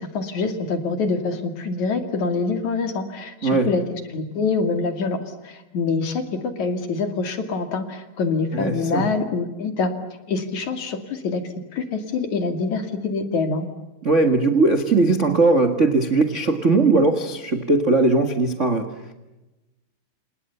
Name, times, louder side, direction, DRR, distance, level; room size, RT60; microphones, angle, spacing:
voice 1, 0.1-3.8 4.1-5.2 5.4-9.9 10.3-11.4 11.7-13.7, left 4 dB, 50° left, 3.4 m, -25 dB
voice 2, 3.4-3.7 8.5-9.1 14.0-19.1, right 3 dB, 50° right, 0.8 m, -19 dB
29.0 x 29.0 x 7.0 m
omnidirectional pair, 4.7 m